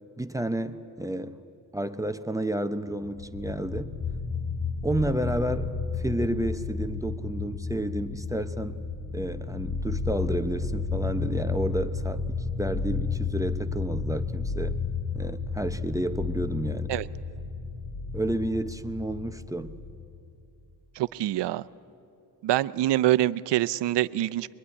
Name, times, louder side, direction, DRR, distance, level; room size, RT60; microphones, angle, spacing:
voice 1, 0.2-1.4 1.7-3.9 4.8-8.8 9.1-12.2 12.6-14.8 15.1-16.9 18.1-19.7, right 1 dB, 10° right, 9 dB, 0.8 m, -31 dB
sound 1, 3.0-20.4, left 4 dB, 40° left, 2.1 m, -32 dB
voice 2, 21.0-21.6 22.4-24.5, right 14 dB, 85° right, 15 dB, 0.7 m, -25 dB
23.5 x 23.0 x 10.0 m, 2.6 s
cardioid pair, 110°, 41 cm